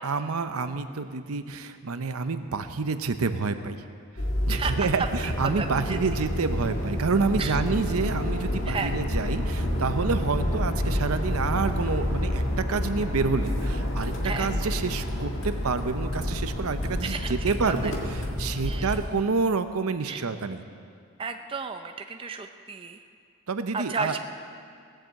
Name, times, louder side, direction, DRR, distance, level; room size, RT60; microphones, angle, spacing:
voice 1, 0.0-3.8 4.5-20.7 23.5-24.2, right 4 dB, 80° right, 10 dB, 0.7 m, -28 dB
sound 1, 4.2-19.1, left 1 dB, 60° left, 1.8 m, -29 dB
voice 2, 5.6-6.0 7.4-7.6 8.7-8.9 14.2-14.5 17.0-17.4 17.7-17.8 18.7-18.9 20.1-20.2 21.2-23.0 23.7-24.2, right 4 dB, 25° right, 6 dB, 0.4 m, -33 dB
17.5 x 7.6 x 7.6 m, 2.2 s
head